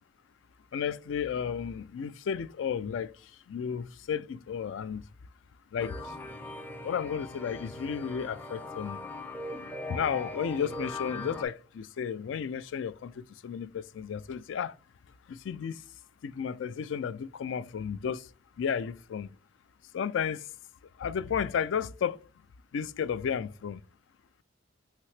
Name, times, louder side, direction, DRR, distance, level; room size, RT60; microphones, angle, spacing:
voice 1, 0.7-5.0 5.7-6.1 6.8-9.1 9.9-14.7 15.3-15.8 16.2-18.3 18.6-19.3 19.9-20.5 21.0-22.2 22.7-23.8, left 7 dB, 70° left, 0.3 m, -33 dB
sound 1, 5.8-11.4, left 2 dB, 10° left, 0.4 m, -40 dB
5.8 x 2.8 x 3.2 m
head